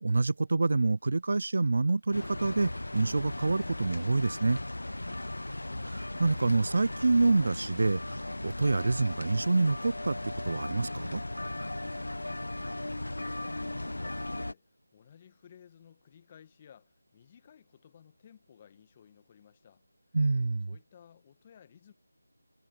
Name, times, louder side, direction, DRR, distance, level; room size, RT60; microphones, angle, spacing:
voice 1, 0.0-4.6 5.9-10.2 10.4-11.2 20.1-20.7, right 3 dB, 55° right, 0.6 m, -27 dB
sound 1, 2.1-14.5, left 1 dB, 75° left, 0.8 m, -37 dB
voice 2, 5.0-5.6 11.9-19.8 20.7-21.9, left 8 dB, 25° left, 1.8 m, -58 dB
figure-of-eight pair, 165°, 0 cm